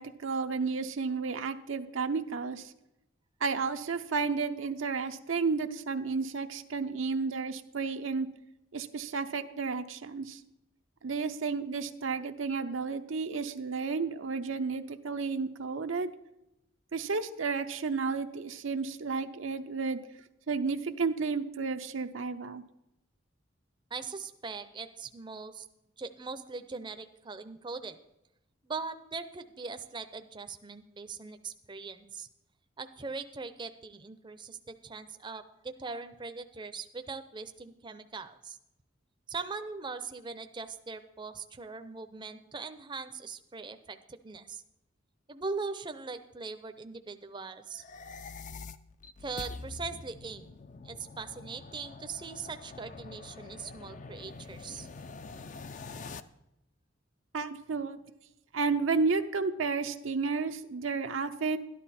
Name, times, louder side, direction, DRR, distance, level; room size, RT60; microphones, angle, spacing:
voice 1, 0.0-2.7 3.4-8.3 8.7-10.4 11.0-16.1 16.9-20.0 20.5-22.6 57.3-58.0 58.5-61.6, right 4 dB, 80° right, 7 dB, 0.6 m, -32 dB
voice 2, 23.9-25.6 26.0-28.0 28.6-32.3 32.8-38.6 39.3-44.6 45.3-47.8 49.2-50.5 50.8-54.9, right 4 dB, 25° right, 9 dB, 0.5 m, -41 dB
sound 1, 47.7-56.2, left 4 dB, 40° left, 0.5 m, -45 dB
12.5 x 11.0 x 4.2 m, 0.87 s
head